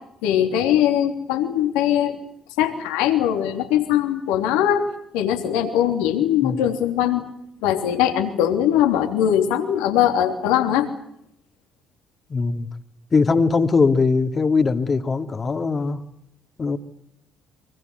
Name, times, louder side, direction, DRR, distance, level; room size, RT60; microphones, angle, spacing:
voice 1, 0.2-2.2 2.6-4.9 5.1-7.3 7.6-10.9, left 10 dB, 80° left, 6 dB, 3.2 m, -21 dB
voice 2, 6.1-6.6 12.3-12.7 13.1-16.1 16.6-16.8, left 4 dB, 35° left, 8 dB, 2.6 m, -21 dB
24.5 x 24.0 x 8.1 m, 0.75 s
hypercardioid pair, 60°, 0 cm